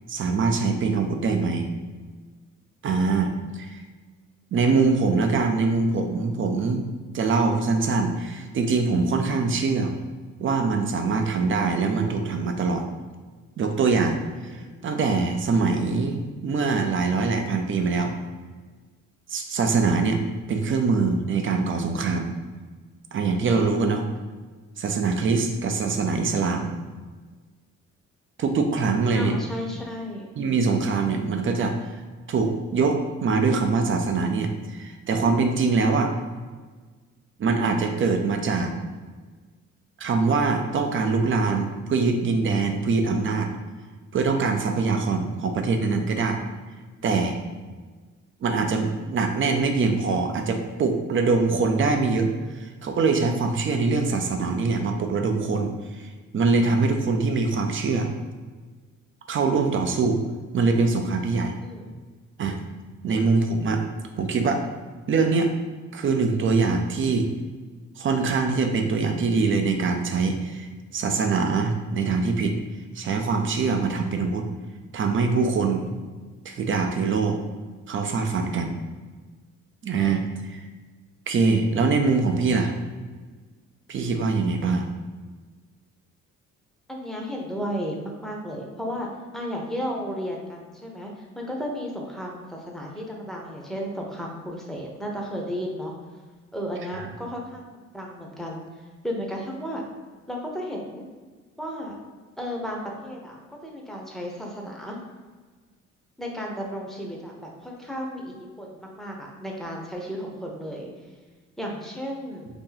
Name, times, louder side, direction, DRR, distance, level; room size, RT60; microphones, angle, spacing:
voice 1, 0.1-1.7 2.8-3.8 4.5-6.8 7.1-9.9 10.4-12.8 13.6-14.2 14.5-18.1 19.3-20.2 20.5-22.3 23.1-24.1 24.8-26.7 28.4-29.4 30.4-32.0 32.3-36.1 37.4-38.7 40.0-43.5 44.1-46.4 47.0-47.4 48.4-58.1 59.3-60.2 60.5-61.6 62.4-62.6 63.0-63.8 64.2-64.6 65.1-65.5 65.9-67.3 68.0-72.6 73.0-74.5 74.9-75.9 76.4-77.4 77.9-78.8 79.8-80.6 81.3-82.7 83.9-84.9 96.9-97.1, right 4 dB, 45° right, 4 dB, 0.5 m, -23 dB
voice 2, 23.8-24.1 29.1-30.3 61.6-62.0 63.1-63.3 80.0-80.3 86.9-89.1 89.3-95.9 96.5-98.6 99.0-99.8 100.3-101.1 101.6-102.0 102.4-105.0 106.2-110.9 111.6-112.5, equal, ahead, -1 dB, 0.7 m, -34 dB
2.9 x 2.6 x 3.9 m, 1.4 s
cardioid pair, 90°, 30 cm